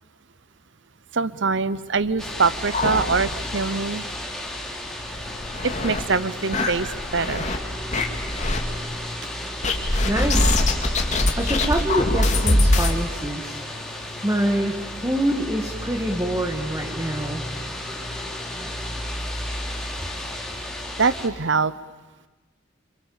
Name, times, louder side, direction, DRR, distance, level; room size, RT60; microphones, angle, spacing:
voice 1, 1.1-4.1 5.6-7.5 21.0-21.7, right 4 dB, 60° right, 17 dB, 0.9 m, -23 dB
sound 1, 2.0-3.6 3.9-4.0 4.4-4.5 5.1-6.0 6.5-7.6 7.9-8.6 9.6-12.9, left 1 dB, 35° left, 2.7 m, -22 dB
sound 2, 2.2-21.3, left 1 dB, 5° left, 3.3 m, -33 dB
voice 2, 10.0-10.6 11.4-13.6 14.2-17.4, right 1 dB, 15° right, 2 dB, 1.9 m, -25 dB
29.5 x 27.0 x 7.2 m, 1.2 s
head